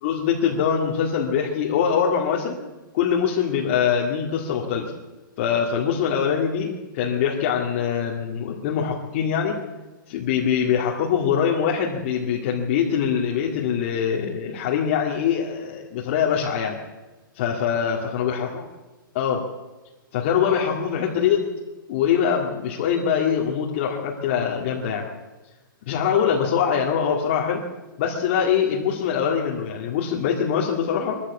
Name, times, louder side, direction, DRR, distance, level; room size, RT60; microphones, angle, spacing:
voice 1, 0.0-2.6 2.9-4.9 5.4-9.6 10.1-16.8 17.4-18.6 19.1-19.5 20.1-21.4 21.9-25.0 25.8-27.6 28.0-31.2, left 7 dB, 35° left, -2 dB, 2.2 m, -23 dB
22.5 x 14.0 x 8.3 m, 1.1 s
hypercardioid pair, 165°, 12 cm